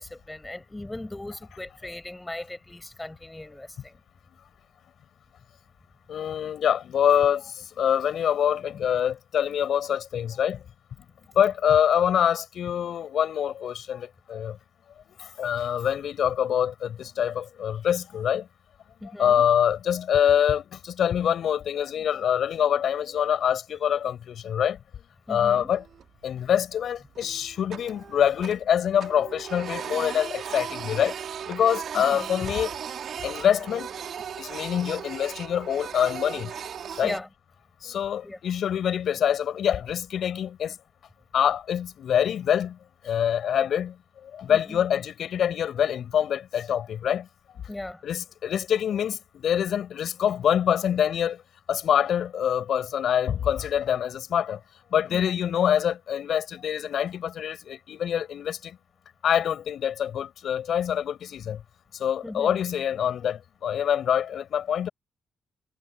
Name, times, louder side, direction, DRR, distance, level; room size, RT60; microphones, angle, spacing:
voice 1, 0.0-4.0 19.0-19.5 25.3-25.7 31.9-32.3 37.0-37.3 38.2-38.4 44.5-44.8 47.7-48.0 55.1-55.3 62.2-62.6, left 1 dB, 10° left, 7.2 m, -38 dB
voice 2, 6.1-7.4 7.8-10.6 11.4-14.6 15.4-18.4 19.2-24.8 25.3-25.8 26.2-31.1 31.5-32.7 33.2-33.9 34.4-36.5 37.0-37.1 37.8-40.7 41.3-42.8 43.1-43.9 44.3-47.3 48.0-51.4 51.7-54.6 54.9-58.7 59.2-61.6 62.0-64.9, left 9 dB, 65° left, 5.6 m, -25 dB
Printer, 25.6-26.2 26.6-26.7 27.2-28.7 29.0-37.2, right 8 dB, 60° right, 4.3 m, -37 dB
cardioid pair, 90°, 0 cm